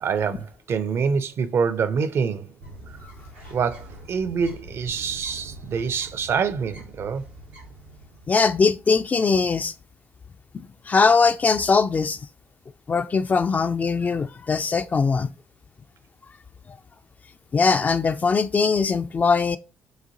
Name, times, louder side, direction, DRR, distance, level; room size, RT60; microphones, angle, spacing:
voice 1, 0.0-2.5 3.5-7.3, right 6 dB, 45° right, 0.5 m, -26 dB
Bird, 2.6-8.5, right 1 dB, 85° right, 1.6 m, -44 dB
voice 2, 8.3-9.7 10.5-12.2 12.9-15.3 17.5-19.6, left 4 dB, 25° left, 0.3 m, -21 dB
6.3 x 2.5 x 2.7 m
figure-of-eight pair, 50°, 6 cm